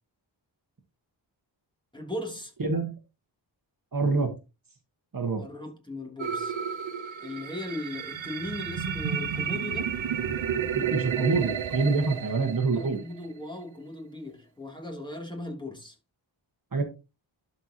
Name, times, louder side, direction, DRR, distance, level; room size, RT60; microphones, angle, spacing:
voice 1, 1.9-2.5 5.4-6.5 7.2-9.9 12.7-16.0, left 2 dB, 10° left, 2.9 m, -38 dB
voice 2, 2.6-2.9 3.9-4.3 5.1-5.4 10.7-13.0 16.7-16.8, right 4 dB, 45° right, 1.5 m, -26 dB
sound 1, 6.2-13.3, right 8 dB, 85° right, 1.0 m, -31 dB
12.0 x 4.6 x 2.9 m
wide cardioid pair, 70°, 45 cm